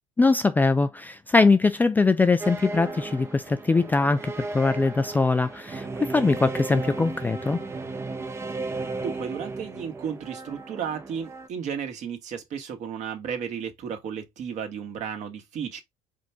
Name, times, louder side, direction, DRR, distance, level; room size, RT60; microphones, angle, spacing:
voice 1, 0.2-7.6, left 3 dB, 10° left, 0.3 m, -22 dB
sound 1, 2.4-11.5, right 3 dB, 15° right, 0.7 m, -35 dB
voice 2, 8.6-15.8, right 7 dB, 55° right, 1.8 m, -34 dB
5.0 x 3.5 x 3.0 m
cardioid pair, 135°, 15 cm